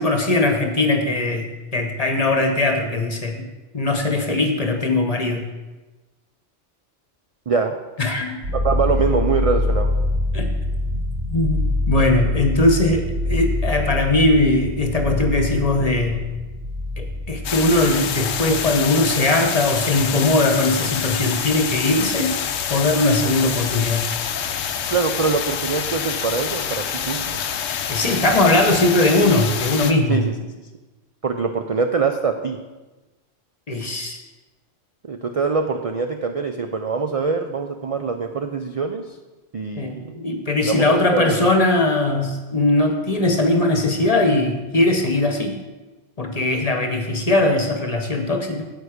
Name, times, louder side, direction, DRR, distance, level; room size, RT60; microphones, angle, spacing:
voice 1, 0.0-1.5 1.7-3.5 3.7-5.4 8.0-8.3 10.3-10.5 11.3-16.2 17.0-22.4 22.7-24.1 27.9-30.2 33.7-34.2 39.8-45.6 46.2-48.6, left 2 dB, 30° left, 5 dB, 1.1 m, -20 dB
sound 1, 8.4-19.1 23.2-23.3 23.5-24.8, left 1 dB, 70° right, 1.4 m, -25 dB
voice 2, 8.5-10.0 24.9-27.4 30.1-30.3 31.2-32.6 35.0-39.2 39.5-40.2 40.6-41.5, right 5 dB, 55° right, 5 dB, 0.3 m, -23 dB
sound 2, 17.4-29.9, left 8 dB, 90° left, 1.1 m, -26 dB
9.3 x 8.2 x 5.0 m, 1.2 s
omnidirectional pair, 1.3 m